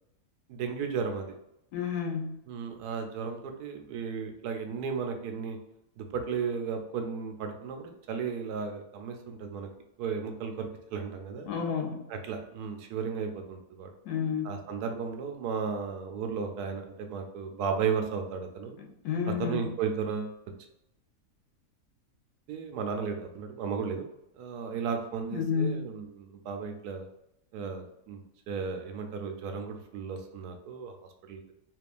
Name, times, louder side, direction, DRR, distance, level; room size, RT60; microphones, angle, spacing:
voice 1, 0.5-1.4 2.5-5.6 6.0-9.7 10.0-11.5 12.1-13.9 14.4-18.8 19.4-20.4 22.5-24.0 24.3-27.1 27.5-30.9 31.3-31.4, right 6 dB, 80° right, 5 dB, 1.1 m, -34 dB
voice 2, 1.7-2.3 11.5-12.0 14.0-14.5 18.8-19.7 25.3-25.8, left 6 dB, 80° left, 2 dB, 1.2 m, -31 dB
3.4 x 3.0 x 2.5 m, 0.83 s
omnidirectional pair, 1.7 m